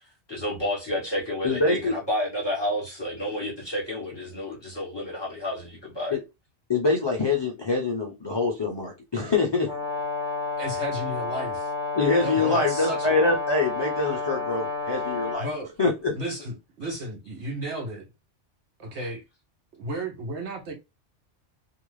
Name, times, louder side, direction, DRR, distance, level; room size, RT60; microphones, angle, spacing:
voice 1, 0.3-6.2 10.6-11.4 12.2-12.3 12.7-13.1 15.4-15.6 16.2-16.5 16.8-17.1 17.4-18.0 18.9-19.2, left 1 dB, 20° left, 1.3 m, -31 dB
voice 2, 1.4-1.9 6.1-6.2 6.7-9.7 11.9-15.5 15.8-16.1, left 3 dB, 40° left, 0.4 m, -24 dB
Brass instrument, 9.6-15.5, left 3 dB, 25° right, 1.2 m, -30 dB
voice 3, 10.6-11.7 12.2-13.2 15.4-15.7 16.1-18.1 18.8-19.2 19.8-20.7, right 1 dB, 70° right, 1.0 m, -34 dB
2.5 x 2.3 x 3.1 m
omnidirectional pair, 1.2 m